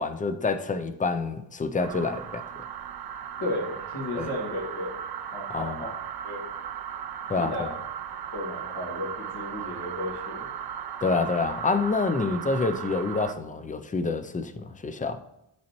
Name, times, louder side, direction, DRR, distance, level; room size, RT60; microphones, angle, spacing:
voice 1, 0.0-2.4 4.1-4.3 5.5-5.8 7.3-7.7 11.0-15.2, left 4 dB, 20° left, 0.3 m, -27 dB
sound 1, 1.8-13.3, right 9 dB, 55° right, 0.5 m, -37 dB
voice 2, 3.4-5.0 5.3-5.9 6.2-6.4 7.4-7.7 8.3-10.5, left 1 dB, 60° left, 2.2 m, -34 dB
10.5 x 4.1 x 3.0 m
wide cardioid pair, 150°, 45 cm